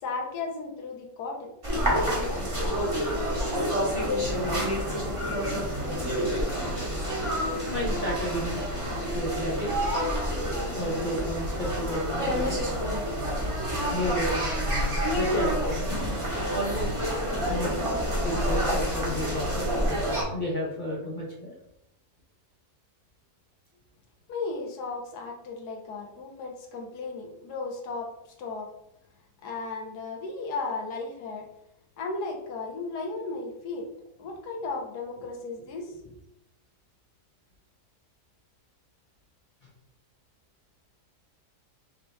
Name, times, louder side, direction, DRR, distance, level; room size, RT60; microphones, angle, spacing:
voice 1, 0.0-3.3 4.0-4.1 24.3-28.1 28.4-28.7 29.4-31.5 32.0-33.9 34.2-36.2, left 3 dB, 75° left, 1 dB, 1.4 m, -35 dB
sound 1, 1.6-20.2, equal, 20° right, 1.3 m, -28 dB
voice 2, 7.7-8.6 9.0-9.7 10.7-12.6 13.8-14.4 15.2-15.9 16.5-16.9 17.5-17.9 18.2-19.7 20.3-21.5, equal, 40° left, -3 dB, 0.8 m, -31 dB
5.8 x 2.7 x 3.3 m, 0.82 s
omnidirectional pair, 1.7 m